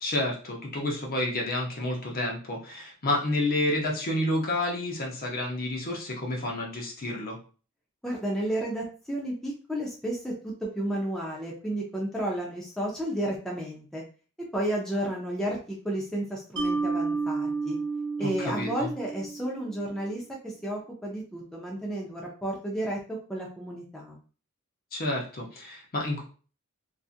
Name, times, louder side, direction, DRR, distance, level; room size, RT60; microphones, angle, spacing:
voice 1, 0.0-7.4 18.2-18.9 24.9-26.2, left 1 dB, 40° left, 0 dB, 0.7 m, -30 dB
voice 2, 8.0-14.0 14.5-17.8 18.2-23.0 23.3-24.2, right 1 dB, ahead, -3 dB, 0.4 m, -32 dB
Mallet percussion, 16.6-19.8, right 4 dB, 55° right, 0.8 m, -31 dB
2.6 x 2.4 x 2.4 m, 0.38 s
head